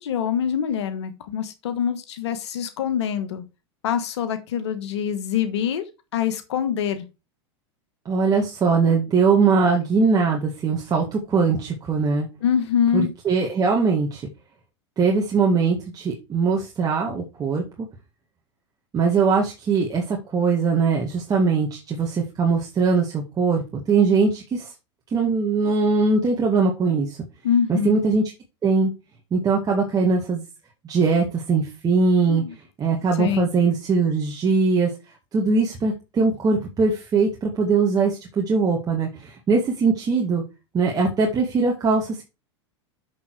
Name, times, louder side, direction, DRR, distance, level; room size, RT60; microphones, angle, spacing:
voice 1, 0.0-3.4 3.8-5.8 6.1-7.0 12.4-13.1 27.4-28.0 32.3-32.5 33.2-33.5, left 8 dB, 75° left, 1.4 m, -24 dB
voice 2, 8.1-12.3 12.9-14.2 15.0-17.6 18.9-24.7 25.1-27.2 27.7-28.2 28.6-28.9 29.3-30.4 30.8-32.4 32.8-34.9 35.3-40.4 40.7-42.2, right 4 dB, 25° right, 2.0 m, -21 dB
6.8 x 6.6 x 4.8 m
hypercardioid pair, 100°, 15 cm